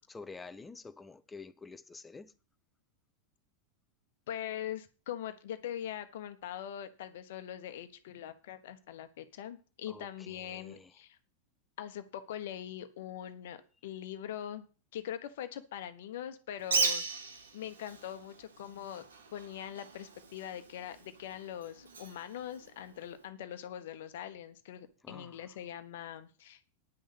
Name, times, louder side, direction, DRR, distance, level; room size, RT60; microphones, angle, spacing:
voice 1, 0.0-2.3 9.9-10.9 25.0-25.5, left 4 dB, 10° left, 0.7 m, -49 dB
voice 2, 4.3-11.2 11.8-14.7 14.9-19.0 19.3-26.6, left 10 dB, 55° left, 1.1 m, -42 dB
Bird, 16.6-23.3, right 4 dB, 70° right, 1.7 m, -38 dB
9.9 x 6.5 x 8.1 m
figure-of-eight pair, 90°, 0 cm